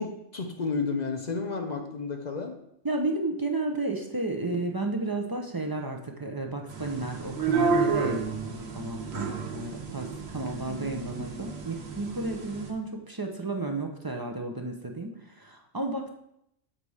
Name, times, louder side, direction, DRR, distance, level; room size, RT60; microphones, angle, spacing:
voice 1, 0.0-2.6 9.1-9.5, left 4 dB, 45° left, 3 dB, 0.6 m, -32 dB
voice 2, 2.8-16.1, right 2 dB, 30° right, 2 dB, 0.4 m, -32 dB
sound 1, 6.7-12.7, right 4 dB, 55° right, 1.2 m, -31 dB
7.5 x 4.1 x 4.8 m, 0.78 s
omnidirectional pair, 1.3 m